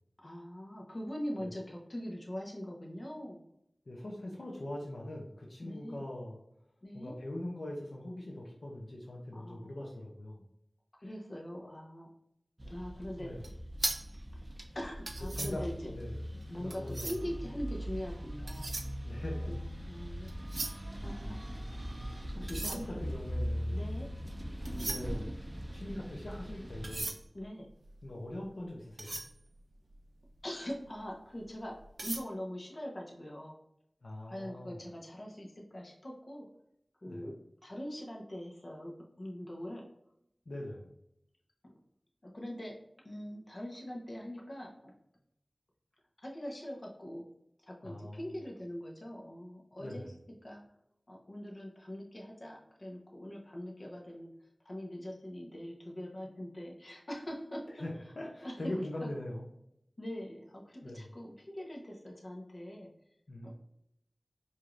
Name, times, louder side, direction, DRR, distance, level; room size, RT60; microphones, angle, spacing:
voice 1, 0.2-3.4 5.6-6.0 6.8-7.1 9.3-9.7 11.0-12.1 12.7-13.3 14.7-15.9 16.5-18.7 19.5-19.6 19.9-20.3 21.0-21.3 22.7-23.0 23.7-24.1 27.3-27.7 30.4-31.7 32.0-33.6 34.2-36.5 37.0-39.8 41.6-41.7 42.2-42.7 43.0-44.9 46.2-47.2 47.7-50.1 50.4-50.6 51.1-54.3 54.6-57.6 58.4-58.6 59.0-59.1 60.0-62.9 63.4-63.5, equal, 50° left, -1 dB, 1.0 m, -42 dB
voice 2, 3.9-6.4 6.9-10.5 13.2-13.4 15.3-15.6 15.9-16.2 16.5-17.2 19.0-19.5 21.0-21.3 22.3-23.8 24.7-25.3 25.7-27.1 28.0-29.2 34.0-34.8 37.1-37.3 40.5-40.9 47.8-48.2 49.8-50.1 57.7-59.4 60.8-61.1 63.3-63.5, left 1 dB, 80° left, -2 dB, 0.7 m, -42 dB
sound 1, 12.6-27.1, equal, 25° right, 0.6 m, -40 dB
sound 2, 13.3-17.4 18.2-19.9 20.2-21.9 22.4-30.4 30.8-31.0 31.4-32.2, right 2 dB, 75° right, 0.4 m, -41 dB
4.8 x 2.8 x 2.5 m, 0.77 s
wide cardioid pair, 45°, 0 cm